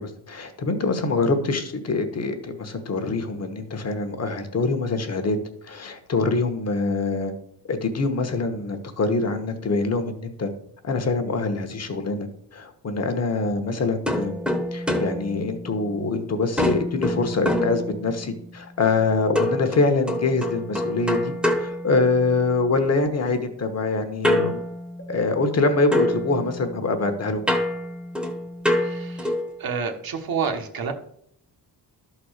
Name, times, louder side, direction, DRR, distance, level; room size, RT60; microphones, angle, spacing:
voice 1, 0.0-5.4 5.6-7.3 7.7-10.5 10.8-14.3 14.7-21.3 21.6-24.6 25.1-27.4, left 3 dB, 35° left, 7 dB, 1.1 m, -24 dB
sound 1, 14.1-16.1 16.6-18.4 19.3-22.6 24.2-25.6 25.9-29.6, left 1 dB, ahead, 1.0 m, -27 dB
voice 2, 28.7-30.9, right 6 dB, 55° right, 5 dB, 1.3 m, -30 dB
12.5 x 4.3 x 6.5 m, 0.68 s
wide cardioid pair, 170°, 43 cm